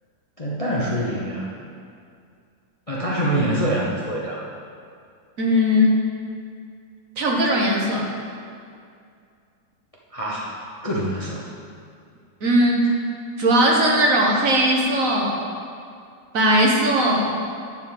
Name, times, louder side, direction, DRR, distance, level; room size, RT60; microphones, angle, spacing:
voice 1, 0.4-1.5 2.9-4.5 10.1-11.5, right 1 dB, 30° left, -5 dB, 0.6 m, -25 dB
voice 2, 5.4-6.0 7.2-8.0 12.4-12.9 13.4-15.4 16.3-17.4, equal, 50° right, -1 dB, 1.5 m, -18 dB
9.7 x 4.4 x 7.1 m, 2.3 s
omnidirectional pair, 2.0 m